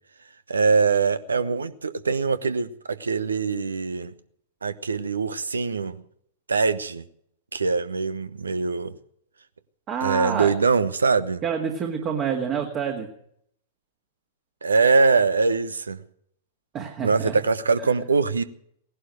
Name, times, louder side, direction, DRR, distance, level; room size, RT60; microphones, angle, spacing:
voice 1, 0.5-4.1 4.6-6.0 6.5-7.0 7.5-8.9 10.0-11.4 14.6-16.0 17.0-18.4, right 4 dB, 75° right, 0.9 m, -23 dB
voice 2, 9.9-10.5 11.4-13.1 16.7-17.4, right 7 dB, 30° right, 1.9 m, -27 dB
18.0 x 11.5 x 6.4 m
figure-of-eight pair, 100°, 0 cm